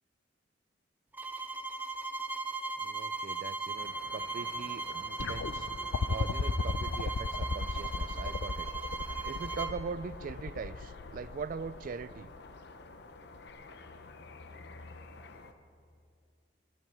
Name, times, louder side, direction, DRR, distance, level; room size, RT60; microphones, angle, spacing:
sound 1, 1.1-9.8, right 3 dB, 10° right, 0.6 m, -38 dB
voice 1, 2.8-5.7 6.1-8.7 9.2-12.3, right 5 dB, 50° right, 17 dB, 0.3 m, -41 dB
sound 2, 3.8-15.5, left 3 dB, 65° left, 0.8 m, -49 dB
sound 3, 5.2-12.4 13.5-13.6, left 4 dB, 85° left, 0.5 m, -35 dB
14.0 x 11.0 x 7.5 m, 2.3 s
head